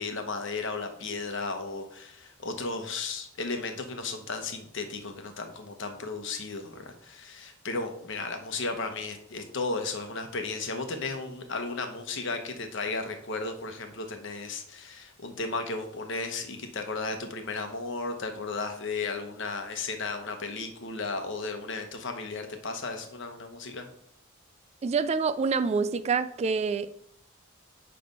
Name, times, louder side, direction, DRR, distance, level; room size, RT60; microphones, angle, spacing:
voice 1, 0.0-23.9, left 3 dB, 65° left, 1.1 m, -34 dB
voice 2, 24.8-26.9, right 5 dB, 30° right, 0.3 m, -26 dB
9.4 x 3.4 x 5.3 m
head